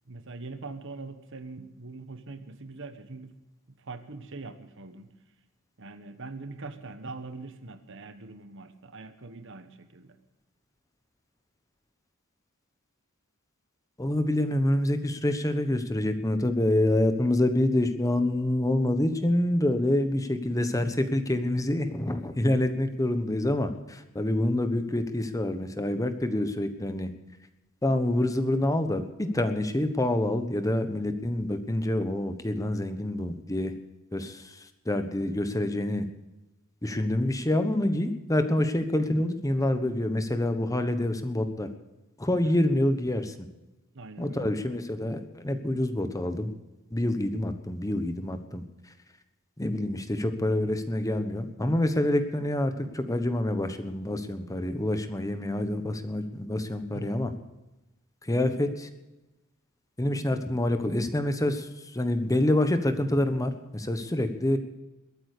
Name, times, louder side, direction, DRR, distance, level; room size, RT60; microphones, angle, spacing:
voice 1, 0.1-3.3 3.7-5.1 5.8-10.2 22.5-22.8 42.4-42.6 43.9-44.6 56.9-57.2, right 3 dB, 60° right, 10 dB, 1.3 m, -42 dB
voice 2, 14.0-27.1 27.8-33.7 34.1-36.1 36.8-41.7 42.2-43.3 44.2-46.5 46.9-48.6 49.6-57.3 58.2-58.9 60.0-64.6, left 1 dB, 15° left, 8 dB, 1.2 m, -27 dB
22.0 x 9.1 x 6.7 m, 1.0 s
head